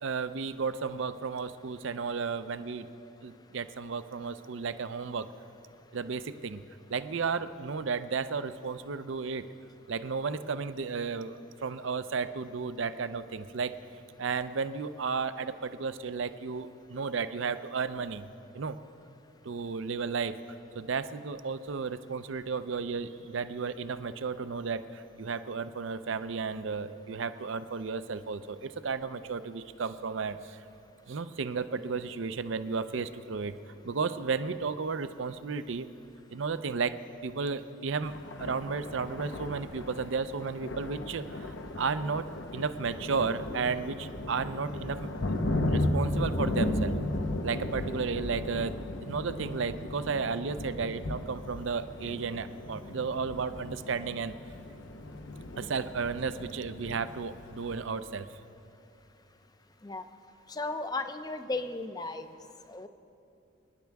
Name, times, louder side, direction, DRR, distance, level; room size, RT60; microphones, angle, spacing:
voice 1, 0.0-2.9 3.2-5.3 5.9-6.6 6.9-9.4 9.9-13.7 14.2-18.3 18.5-18.8 19.4-20.3 20.7-30.6 31.1-33.5 33.8-35.9 36.3-38.1 38.4-42.3 42.5-45.1 45.7-46.9 47.4-48.7 49.1-54.3 55.6-58.3, right 5 dB, 65° right, 12 dB, 0.5 m, -33 dB
Thunder, 38.0-57.8, left 1 dB, 60° left, 0.8 m, -35 dB
voice 2, 60.5-62.3 62.7-62.9, left 3 dB, 20° left, 9 dB, 0.5 m, -35 dB
27.0 x 10.5 x 3.5 m, 2.6 s
head